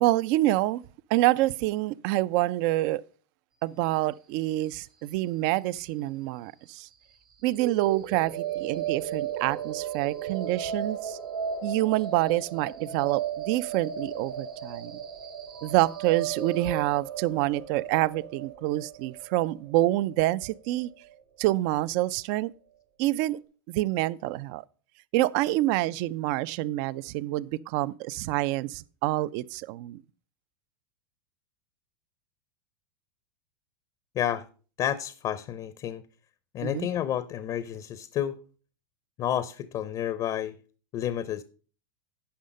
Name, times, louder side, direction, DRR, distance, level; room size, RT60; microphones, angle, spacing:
voice 1, 0.0-0.8 1.1-3.0 3.6-6.9 7.4-11.2 11.6-14.9 15.6-20.9 21.4-22.5 23.0-23.4 23.7-24.6 25.1-30.0 36.6-36.9, right 16 dB, 55° right, 0.4 m, -27 dB
sound 1, 7.5-21.5, right 8 dB, 90° right, 2.8 m, -35 dB
voice 2, 34.1-34.5 34.8-36.0 36.5-38.4 39.2-40.6 40.9-41.4, left 10 dB, 35° left, 0.6 m, -30 dB
10.5 x 5.5 x 5.3 m
hypercardioid pair, 105°, 12 cm